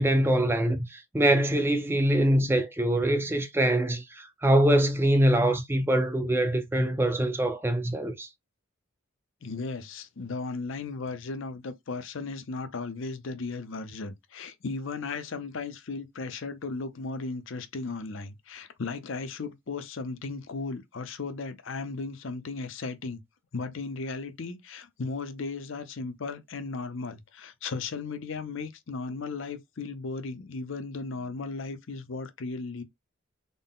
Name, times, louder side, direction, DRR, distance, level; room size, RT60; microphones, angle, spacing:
voice 1, 0.0-8.3, right 1 dB, 10° right, 0.4 m, -24 dB
voice 2, 9.4-23.2 23.5-32.8, left 4 dB, 65° left, 0.6 m, -36 dB
3.9 x 2.1 x 3.6 m
head